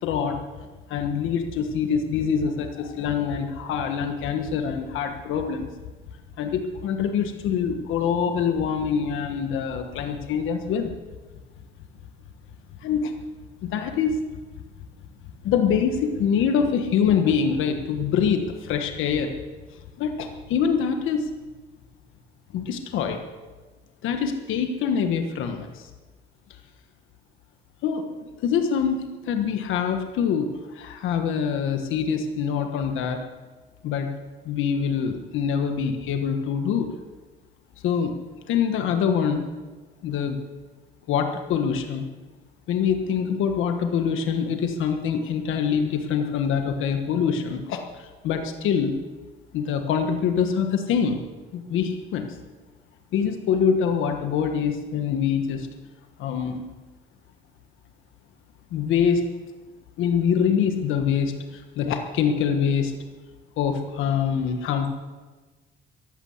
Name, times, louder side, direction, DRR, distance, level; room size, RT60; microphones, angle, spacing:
voice 1, 0.0-0.4 0.9-5.7 6.4-10.9 12.8-13.1 13.6-14.2 15.4-19.3 20.0-21.3 22.5-23.2 24.0-25.9 27.8-33.2 33.8-34.1 34.4-36.9 37.8-38.1 38.5-39.5 40.0-40.4 41.1-42.1 42.7-49.0 49.5-51.2 51.5-52.4 53.1-55.7 56.2-56.6 58.7-59.2 60.0-62.9 63.6-64.9, left 7 dB, 90° left, 5 dB, 1.4 m, -25 dB
15.0 x 11.5 x 7.9 m, 1.3 s
cardioid pair, 90°, 20 cm